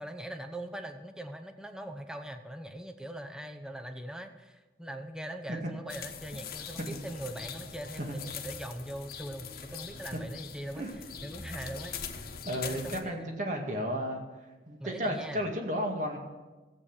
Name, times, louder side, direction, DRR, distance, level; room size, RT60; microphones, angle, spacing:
voice 1, 0.0-11.9 12.6-13.4 14.8-15.5, right 1 dB, 5° right, 6 dB, 0.8 m, -41 dB
sound 1, 5.9-13.0, left 6 dB, 55° left, 1.2 m, -42 dB
voice 2, 12.5-14.2 14.7-16.2, equal, 45° right, 2 dB, 2.1 m, -33 dB
14.5 x 8.2 x 7.2 m, 1.2 s
head